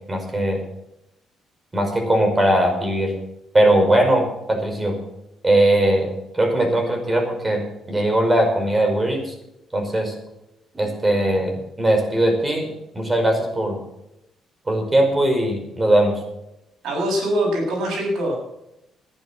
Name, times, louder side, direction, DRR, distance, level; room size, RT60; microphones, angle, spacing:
voice 1, 0.1-0.6 1.7-3.1 3.5-5.0 5.4-9.3 9.7-10.1 10.7-12.7 12.9-13.8 14.7-16.2, right 1 dB, 20° right, 4 dB, 5.1 m, -20 dB
voice 2, 16.8-18.4, right 1 dB, 75° right, 0 dB, 7.5 m, -23 dB
12.5 x 10.0 x 7.8 m, 0.86 s
cardioid pair, 90°, 0 cm